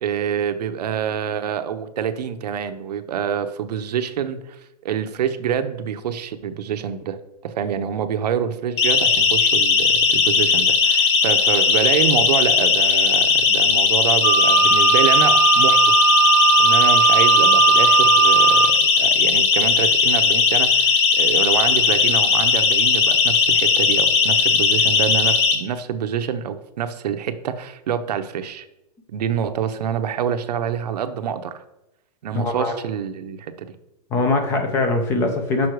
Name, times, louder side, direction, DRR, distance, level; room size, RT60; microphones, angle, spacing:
voice 1, 0.0-4.4 4.8-7.2 7.4-15.9 16.6-28.7 29.1-31.6 32.2-33.7, right 8 dB, 75° right, 9 dB, 0.8 m, -26 dB
Siren, 8.8-25.5, left 5 dB, 40° left, 1.0 m, -17 dB
Wind instrument woodwind instrument, 14.2-18.7, right 7 dB, 30° right, 0.8 m, -17 dB
voice 2, 32.3-32.7 34.1-35.7, left 2 dB, 10° left, 5 dB, 0.5 m, -21 dB
6.3 x 5.6 x 4.7 m, 0.90 s
supercardioid pair, 180°, 21 cm